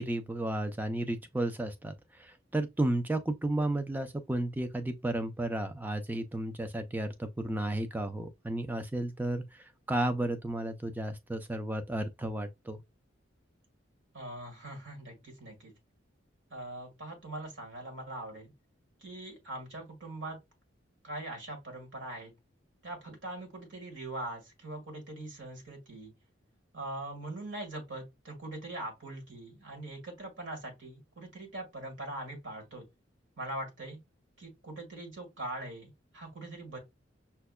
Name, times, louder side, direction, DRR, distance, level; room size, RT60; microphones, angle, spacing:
voice 1, 0.0-1.9 2.2-9.4 9.9-12.8, right 1 dB, 10° right, 0.4 m, -33 dB
voice 2, 14.1-15.7 16.5-18.5 19.0-20.4 21.0-22.3 22.8-26.1 26.7-32.9 33.4-34.0 34.4-36.8, right 1 dB, 70° right, 1.7 m, -42 dB
5.7 x 2.2 x 2.2 m
head